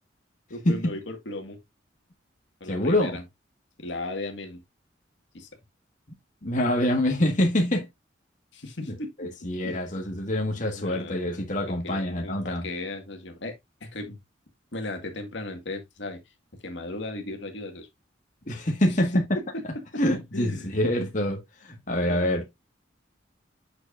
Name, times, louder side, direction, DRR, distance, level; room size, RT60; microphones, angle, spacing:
voice 1, 0.5-1.6 2.6-3.2 3.8-4.6 5.3-5.5 8.5-9.3 9.6-9.8 10.5-11.3 11.7-13.6 13.8-14.2 14.7-16.2 16.6-17.9 18.9-19.0 19.3-19.6 20.3-20.8 22.1-22.4, left 2 dB, 70° left, 1.9 m, -36 dB
voice 2, 2.7-3.2 6.4-7.8 8.9-12.7 18.5-19.1 20.0-22.4, left 1 dB, 40° left, 1.6 m, -26 dB
7.9 x 6.7 x 2.5 m
head